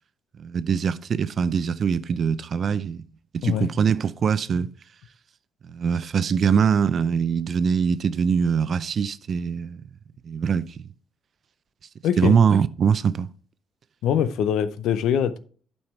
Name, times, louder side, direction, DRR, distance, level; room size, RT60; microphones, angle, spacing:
voice 1, 0.4-3.1 3.4-4.7 5.6-9.8 10.2-10.9 12.2-13.3, right 6 dB, 55° right, 0.5 m, -23 dB
voice 2, 12.0-12.4 14.0-15.4, left 9 dB, 80° left, 0.6 m, -23 dB
8.8 x 5.5 x 4.4 m
cardioid pair, 90°, 0 cm